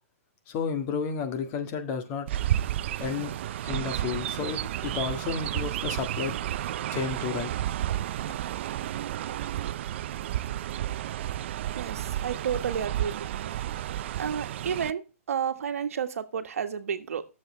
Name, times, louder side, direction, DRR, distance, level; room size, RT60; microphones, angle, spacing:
voice 1, 0.5-2.3 3.0-3.3 3.6-6.4 6.9-7.5, left 6 dB, 30° left, 1.7 m, -32 dB
Chirp tweet, 2.3-14.9, right 12 dB, 50° right, 0.4 m, -32 dB
voice 2, 11.7-13.6 14.2-17.3, right 7 dB, 75° right, 1.4 m, -31 dB
11.0 x 7.3 x 3.2 m
hypercardioid pair, 145°, 8 cm